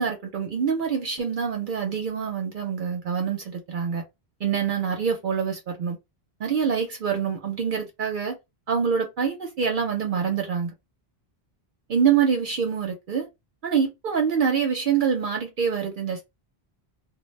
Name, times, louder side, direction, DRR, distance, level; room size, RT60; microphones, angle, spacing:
voice 1, 0.0-4.0 4.4-6.0 6.4-8.4 8.7-10.7 11.9-13.3 13.6-16.2, right 7 dB, 60° right, 0.6 m, -25 dB
2.1 x 2.0 x 3.1 m
omnidirectional pair, 1.1 m